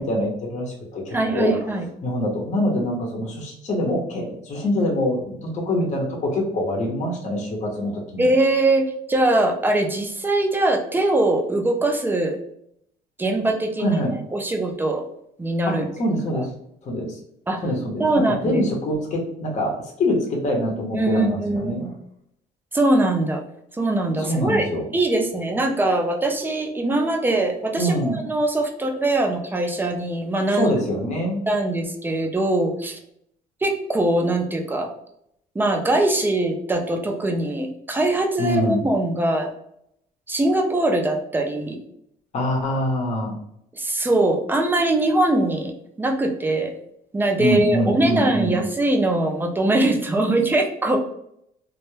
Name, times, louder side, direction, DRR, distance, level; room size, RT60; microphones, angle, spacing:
voice 1, 0.0-1.7 2.0-8.3 13.8-14.1 15.7-16.5 16.8-17.2 17.6-21.9 24.2-24.8 27.8-28.2 30.5-31.4 38.4-38.8 42.3-43.4 47.4-48.6, left 1 dB, 45° left, 0 dB, 0.7 m, -24 dB
voice 2, 1.1-1.9 8.2-12.4 13.2-14.0 14.3-15.0 15.4-15.8 16.3-16.4 17.5-17.6 18.0-18.6 20.9-21.9 22.7-23.4 23.7-24.7 24.9-30.7 31.5-33.0 33.6-34.9 35.5-39.5 40.3-41.8 43.7-45.7 46.0-46.7 47.1-51.0, right 2 dB, 10° right, 3 dB, 0.4 m, -22 dB
2.2 x 2.1 x 3.0 m, 0.73 s
cardioid pair, 110°, 17 cm